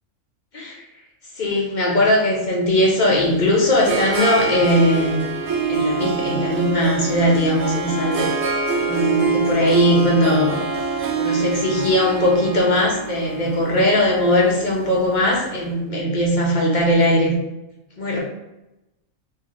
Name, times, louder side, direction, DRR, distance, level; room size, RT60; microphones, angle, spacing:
voice 1, 0.5-0.9 1.4-5.2 5.7-8.3 8.8-10.6 11.1-17.4 18.0-18.2, left 1 dB, 40° left, -3 dB, 0.7 m, -19 dB
Harp, 3.2-15.3, right 3 dB, 60° right, 0.9 m, -25 dB
2.8 x 2.7 x 3.7 m, 0.93 s
omnidirectional pair, 1.4 m